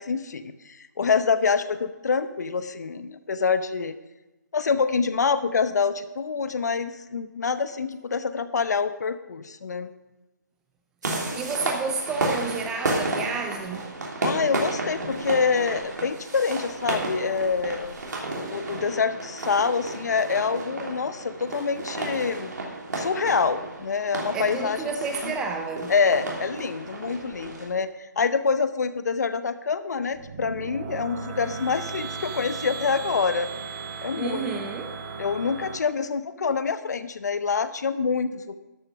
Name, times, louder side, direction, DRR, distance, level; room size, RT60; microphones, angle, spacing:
voice 1, 0.0-4.0 4.5-9.9 14.2-18.0 18.3-22.5 23.0-25.0 25.2-25.3 25.9-27.9 28.2-33.5 34.0-34.5 35.2-38.6, left 5 dB, 60° left, 12 dB, 0.9 m, -26 dB
sound 1, 11.0-27.6, right 2 dB, 65° right, 3.2 m, -32 dB
voice 2, 11.4-13.9 24.3-25.9 34.2-34.9, right 5 dB, 5° right, 5 dB, 0.3 m, -30 dB
sound 2, 30.0-35.8, right 5 dB, 25° right, 1.3 m, -36 dB
13.0 x 6.7 x 6.2 m, 1.1 s
hypercardioid pair, 160°, 10 cm